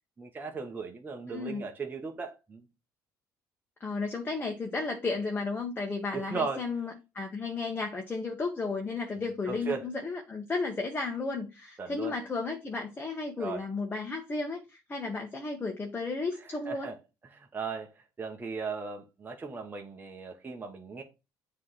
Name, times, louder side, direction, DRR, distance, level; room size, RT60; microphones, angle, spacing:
voice 1, 0.2-2.6 6.1-6.7 9.5-9.9 11.8-12.1 13.4-13.6 16.6-17.0 17.3-21.0, right 4 dB, 25° right, 1.4 m, -37 dB
voice 2, 1.3-1.6 3.8-16.9, left 3 dB, 25° left, 1.4 m, -33 dB
7.4 x 3.4 x 5.8 m
cardioid pair, 100°, 8 cm